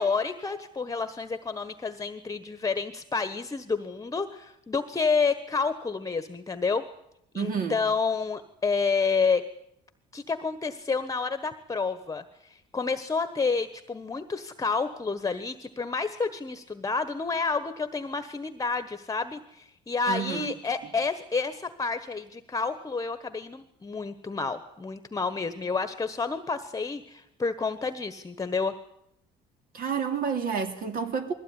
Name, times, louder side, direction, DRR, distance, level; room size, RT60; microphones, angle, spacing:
voice 1, 0.0-6.8 7.3-9.4 10.1-28.8, left 4 dB, 20° left, 10 dB, 1.3 m, -29 dB
voice 2, 7.3-7.8 20.1-20.5 29.7-31.3, right 6 dB, 60° right, 6 dB, 3.1 m, -29 dB
21.0 x 15.5 x 9.9 m, 0.77 s
cardioid pair, 110°, 17 cm